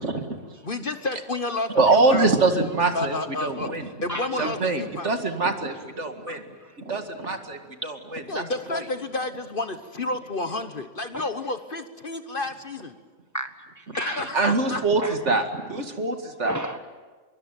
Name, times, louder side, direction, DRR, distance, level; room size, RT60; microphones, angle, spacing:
voice 1, 0.0-0.6 1.7-3.8 4.3-8.4 8.7-8.8 13.9-14.0 14.3-16.6, right 3 dB, 55° right, 6 dB, 2.4 m, -24 dB
voice 2, 0.6-2.3 2.9-3.7 4.0-5.1 8.3-13.0 14.0-14.8, left 2 dB, 40° left, 9 dB, 1.3 m, -30 dB
voice 3, 4.1-4.5 6.3-6.4 11.1-11.3 13.3-14.3 15.0-15.1 16.4-16.8, right 1 dB, 15° left, 7 dB, 1.4 m, -33 dB
24.5 x 23.0 x 9.1 m, 1.3 s
omnidirectional pair, 1.4 m